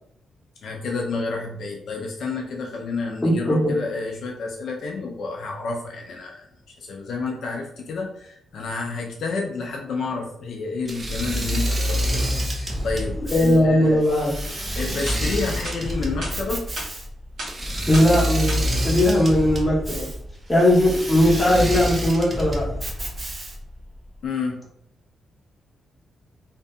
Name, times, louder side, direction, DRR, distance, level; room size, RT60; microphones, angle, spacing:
voice 1, 0.6-6.5 6.8-14.0 14.8-16.6 24.2-24.6, left 4 dB, 65° left, -1 dB, 0.4 m, -30 dB
voice 2, 3.2-3.7 13.3-14.3 17.9-20.1 20.5-22.7, left 1 dB, 10° left, -6 dB, 0.8 m, -19 dB
Engine / Mechanisms, 10.9-23.7, equal, 20° right, 0.5 m, -27 dB
sound 1, 15.0-15.2 15.6-15.8 16.2-16.3 16.8-16.9 17.4-17.5 17.9-18.1 18.5-18.6, right 1 dB, 75° right, 1.1 m, -32 dB
2.6 x 2.5 x 2.3 m, 0.73 s
wide cardioid pair, 145°, 0 cm